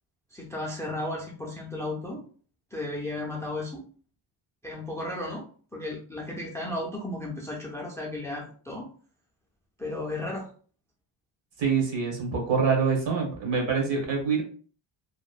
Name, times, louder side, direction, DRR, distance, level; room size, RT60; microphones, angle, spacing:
voice 1, 0.3-2.2 2.7-3.8 4.6-5.4 5.7-8.9 9.8-10.5, left 1 dB, 5° left, -1 dB, 0.4 m, -34 dB
voice 2, 11.6-14.4, right 5 dB, 65° right, 0 dB, 1.1 m, -25 dB
2.9 x 2.1 x 2.4 m, 0.42 s
cardioid pair, 135°, 47 cm